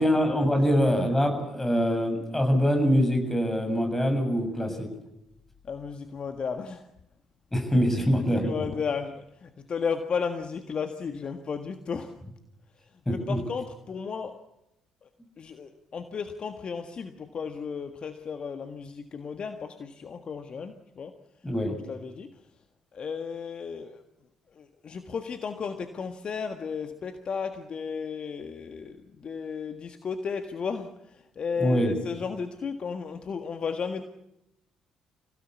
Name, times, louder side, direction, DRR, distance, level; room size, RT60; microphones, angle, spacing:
voice 1, 0.0-4.9 7.5-8.6 13.1-13.4 21.4-21.8 31.6-31.9, equal, 15° left, 5 dB, 7.5 m, -24 dB
voice 2, 5.6-6.9 8.3-12.2 13.1-14.4 15.0-15.1 15.4-21.1 21.9-22.4 22.9-24.0 24.5-34.0, left 6 dB, 45° left, 7 dB, 1.6 m, -34 dB
27.0 x 17.0 x 8.5 m, 0.86 s
figure-of-eight pair, 45°, 2 cm